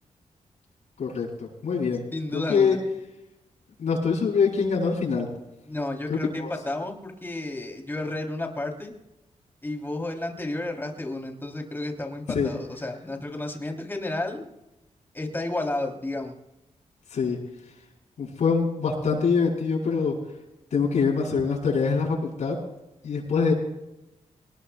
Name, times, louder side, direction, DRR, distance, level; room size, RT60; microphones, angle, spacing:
voice 1, 1.0-2.0 2.3-2.8 3.8-5.3 6.1-6.5 12.3-12.5 17.1-17.4 18.2-20.2 20.7-22.6 23.0-23.5, left 5 dB, 75° left, -3 dB, 7.6 m, -24 dB
voice 2, 2.1-2.8 5.6-8.9 9.6-14.5 15.1-16.3, left 2 dB, 15° left, 2 dB, 3.2 m, -32 dB
27.0 x 19.5 x 2.3 m, 0.92 s
wide cardioid pair, 130°, 12 cm